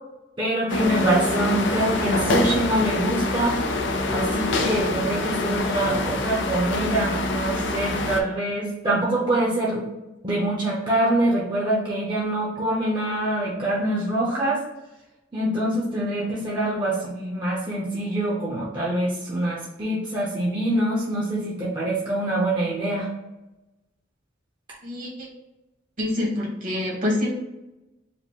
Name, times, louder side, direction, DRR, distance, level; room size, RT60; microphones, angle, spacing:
voice 1, 0.4-3.6 4.1-9.8 10.2-14.6 15.3-23.1, right 1 dB, 25° right, -6 dB, 0.8 m, -25 dB
sound 1, 0.7-8.2, left 2 dB, 80° left, 0.6 m, -25 dB
voice 2, 24.8-25.3 26.0-27.3, left 1 dB, 50° right, -3 dB, 1.4 m, -26 dB
4.9 x 2.1 x 3.6 m, 0.99 s
head